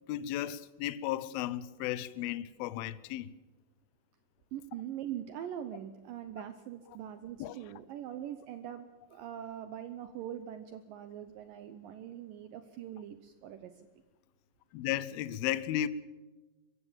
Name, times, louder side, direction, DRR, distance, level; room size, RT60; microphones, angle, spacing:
voice 1, 0.1-3.3 7.4-7.5 14.7-15.9, left 12 dB, 80° left, 2.3 m, -34 dB
voice 2, 4.5-13.9, right 10 dB, 85° right, 1.9 m, -42 dB
23.5 x 15.5 x 7.4 m
omnidirectional pair, 5.2 m